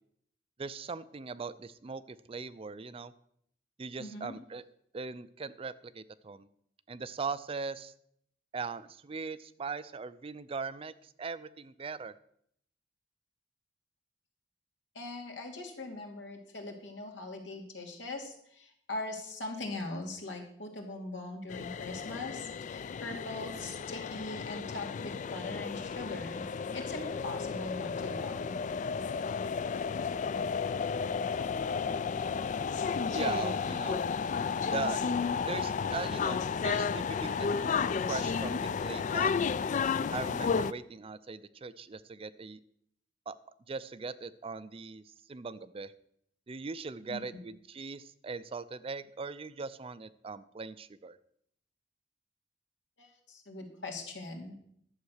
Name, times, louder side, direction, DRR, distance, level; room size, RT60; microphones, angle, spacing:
voice 1, 0.6-3.1 3.8-4.6 4.9-6.5 6.9-7.9 8.5-12.1 33.1-34.0 34.7-35.0 35.5-37.8 38.1-39.3 40.1-42.6 43.3-43.4 43.7-45.0 45.3-45.9 46.5-51.2, right 4 dB, 30° right, 15 dB, 0.4 m, -40 dB
voice 2, 4.0-4.3 14.9-26.4 26.7-28.6 47.1-47.4 53.0-54.5, left 2 dB, 85° left, 2 dB, 2.5 m, -41 dB
sound 1, 21.5-40.7, left 6 dB, 45° left, 0.3 m, -32 dB
11.5 x 7.4 x 6.3 m, 0.69 s
head